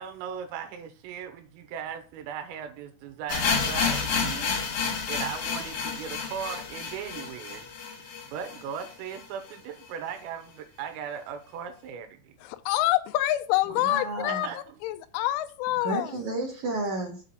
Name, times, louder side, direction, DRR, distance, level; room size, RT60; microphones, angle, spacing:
voice 1, 0.0-4.5 5.1-7.7 8.0-12.2 14.3-14.6, right 8 dB, 85° right, 6 dB, 3.6 m, -38 dB
sound 1, 3.3-9.2 9.5-9.6 9.8-9.9 10.5-10.6, left 5 dB, 65° left, 2.1 m, -30 dB
voice 2, 12.4-16.2, left 15 dB, 85° left, 9 dB, 2.8 m, -27 dB
voice 3, 13.8-14.4 15.8-17.2, right 2 dB, 60° right, -1 dB, 2.0 m, -31 dB
7.5 x 4.2 x 6.2 m, 0.39 s
omnidirectional pair, 5.8 m